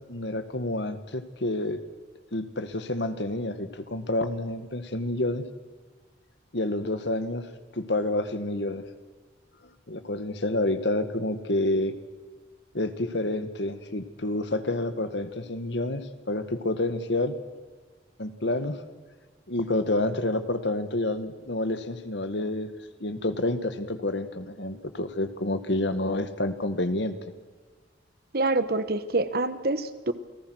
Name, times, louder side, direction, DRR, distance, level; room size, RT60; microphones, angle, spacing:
voice 1, 0.0-1.8 2.3-5.5 6.5-7.5 7.7-8.8 9.9-11.9 12.7-17.3 18.2-18.8 19.5-22.7 23.0-27.2, left 2 dB, 75° left, 10 dB, 1.8 m, -28 dB
voice 2, 28.3-30.1, right 2 dB, 55° right, 12 dB, 1.3 m, -26 dB
29.5 x 19.5 x 6.4 m, 1.4 s
head